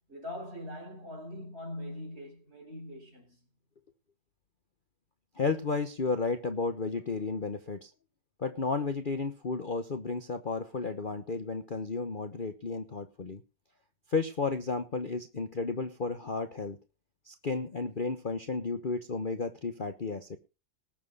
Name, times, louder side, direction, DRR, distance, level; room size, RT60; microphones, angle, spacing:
voice 1, 0.1-3.4, left 1 dB, 40° right, 5.5 m, -42 dB
voice 2, 5.4-7.9 8.4-13.4 14.1-16.8 17.3-20.4, left 4 dB, 35° left, 1.1 m, -33 dB
19.0 x 7.6 x 5.5 m
omnidirectional pair, 1.7 m